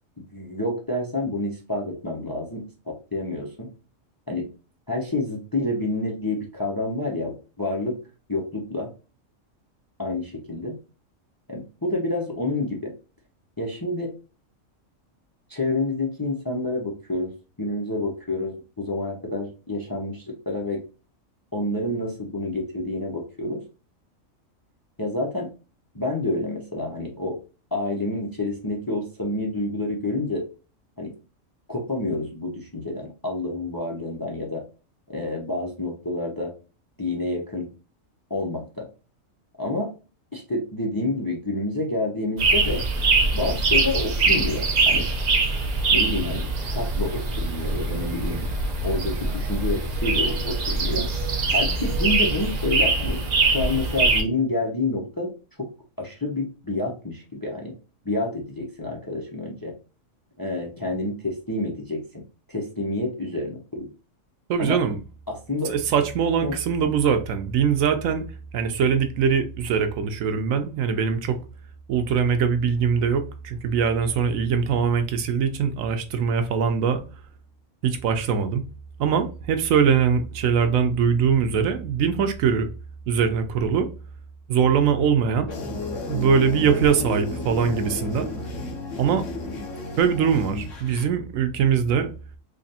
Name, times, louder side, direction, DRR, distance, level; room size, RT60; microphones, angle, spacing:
voice 1, 0.2-3.7 4.3-4.5 4.9-8.0 8.3-8.9 10.0-10.8 11.5-12.9 13.6-14.1 15.5-17.3 17.6-20.8 21.5-23.6 25.0-25.5 25.9-27.4 27.7-30.5 31.0-31.1 31.7-34.6 35.1-36.5 37.0-37.7 38.3-38.9 39.6-39.9 40.3-42.8 43.3-45.1 45.9-46.5 46.7-48.5 48.8-51.1 51.5-55.3 55.6-55.7 56.0-57.8 58.0-59.7 60.4-62.2 62.5-63.9 64.6-64.8 65.3-65.7 66.4-66.6, left 2 dB, 25° left, 0.6 m, -28 dB
sound 1, 42.4-54.2, right 3 dB, 45° right, 0.6 m, -23 dB
voice 2, 64.5-65.0 65.7-68.2 68.5-71.4 71.9-77.0 77.8-78.6 79.0-82.7 83.1-83.9 84.5-85.5 86.1-88.3 89.0-89.2 90.0-92.1, right 6 dB, 85° right, 1.0 m, -22 dB
sound 2, 85.5-91.0, left 3 dB, 70° left, 1.2 m, -33 dB
3.3 x 2.5 x 4.1 m
omnidirectional pair, 1.4 m